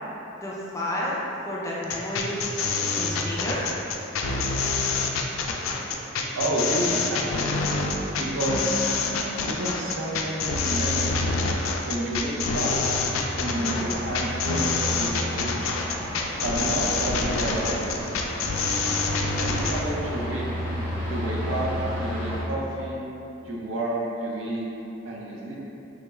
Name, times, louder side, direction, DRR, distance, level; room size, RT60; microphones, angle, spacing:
voice 1, 0.4-2.4 3.0-3.6, left 1 dB, 15° left, -6 dB, 0.4 m, -31 dB
sound 1, 1.8-19.8, left 4 dB, 90° left, 0.3 m, -26 dB
voice 2, 6.4-7.5 8.2-8.9 9.4-11.3 11.9-12.8 13.3-15.8 16.4-18.2 19.4-20.5 21.1-21.7 22.0-23.0 23.4-24.7 25.0-25.6, right 1 dB, 75° right, -4 dB, 0.6 m, -30 dB
sound 2, 12.3-22.4, equal, 45° right, 1.1 m, -33 dB
3.6 x 2.3 x 3.0 m, 3.0 s
head